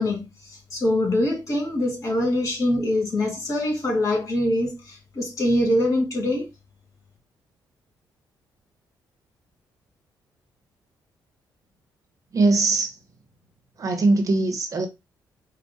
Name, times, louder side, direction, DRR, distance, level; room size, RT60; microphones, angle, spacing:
voice 1, 0.0-6.5, left 1 dB, 40° left, 2.2 m, -24 dB
voice 2, 12.3-12.9 13.8-14.9, right 3 dB, 45° right, 1.1 m, -21 dB
4.8 x 2.4 x 4.2 m
cardioid pair, 105°, 8 cm